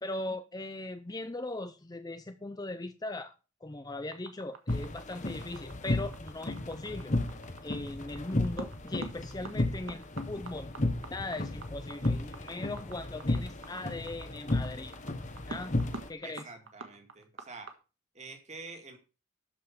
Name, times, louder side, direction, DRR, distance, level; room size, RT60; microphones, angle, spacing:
voice 1, 0.0-3.3 3.6-7.1 7.6-10.7 11.1-14.9 15.5-15.8 16.1-16.5, left 2 dB, 20° left, 11 dB, 0.5 m, -39 dB
sound 1, 4.1-17.7, right 3 dB, 60° right, 1.6 m, -45 dB
sound 2, 4.7-16.1, left 2 dB, 35° left, 1.1 m, -34 dB
voice 2, 16.2-17.7 18.1-19.0, right 3 dB, 30° right, 5 dB, 2.1 m, -47 dB
13.0 x 5.5 x 5.8 m, 0.33 s
head